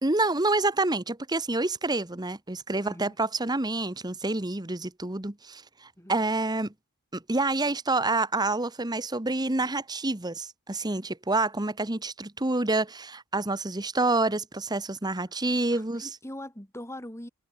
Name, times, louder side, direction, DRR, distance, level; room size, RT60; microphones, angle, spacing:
voice 1, 0.0-6.7 7.1-16.1, right 2 dB, 20° right, 1.3 m, -28 dB
voice 2, 2.8-3.2 6.0-6.1 15.7-17.3, left 1 dB, 10° left, 3.0 m, -41 dB
head